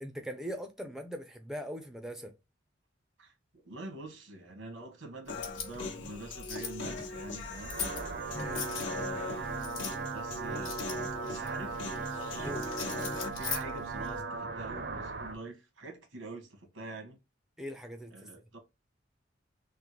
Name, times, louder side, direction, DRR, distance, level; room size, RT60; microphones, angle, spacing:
voice 1, 0.0-2.3 8.3-8.6 12.4-12.6 17.6-18.1, equal, 5° right, 0.4 m, -40 dB
voice 2, 3.6-7.8 8.9-9.8 10.1-10.8 11.2-11.8 12.3-17.2 18.1-18.6, right 2 dB, 90° right, 1.3 m, -45 dB
sound 1, 5.3-14.2, left 6 dB, 90° left, 1.2 m, -42 dB
Human voice, 5.3-13.3, left 3 dB, 75° left, 0.9 m, -41 dB
sound 2, 7.4-15.4, right 4 dB, 55° right, 0.6 m, -38 dB
3.6 x 2.1 x 2.9 m
head